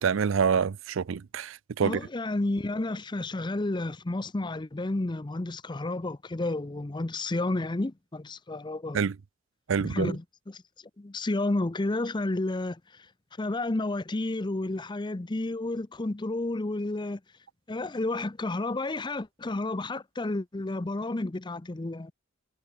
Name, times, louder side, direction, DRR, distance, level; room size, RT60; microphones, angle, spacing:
voice 1, 0.0-2.0 8.9-9.1 9.7-10.1, right 6 dB, 75° right, 0.5 m, -26 dB
voice 2, 1.8-9.0 9.8-10.6 11.0-12.8 13.4-17.2 17.7-22.1, left 2 dB, 25° left, 0.6 m, -31 dB
head